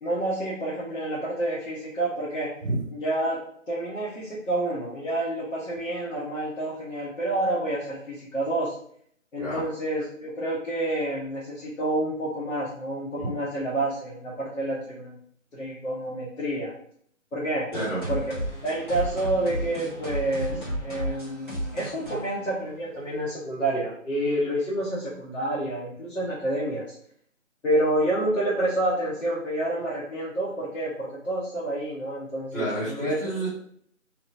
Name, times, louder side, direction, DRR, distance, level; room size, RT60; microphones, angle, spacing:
voice 1, 0.0-2.5 2.9-3.4 3.7-8.7 9.3-15.2 15.5-16.7 17.3-17.6 18.1-18.4 18.6-26.9 27.6-33.2, right 1 dB, 70° left, -7 dB, 1.0 m, -28 dB
sound 1, 17.7-23.2, equal, 40° left, 1.1 m, -33 dB
voice 2, 17.7-18.2 20.5-20.6 32.5-33.5, right 1 dB, ahead, -15 dB, 0.6 m, -30 dB
2.8 x 2.1 x 2.6 m, 0.64 s
figure-of-eight pair, 175°, 40 cm